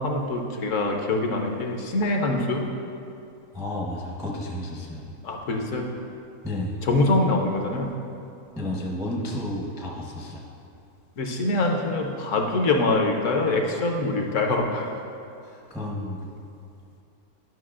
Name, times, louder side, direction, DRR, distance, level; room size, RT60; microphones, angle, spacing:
voice 1, 0.0-2.7 5.2-5.9 6.8-7.9 11.2-14.9, left 2 dB, 65° left, 2 dB, 0.9 m, -24 dB
voice 2, 3.5-5.0 6.4-6.8 8.5-10.5 15.4-16.3, left 1 dB, 5° right, -2 dB, 0.4 m, -32 dB
11.0 x 5.9 x 2.4 m, 2.6 s
omnidirectional pair, 1.6 m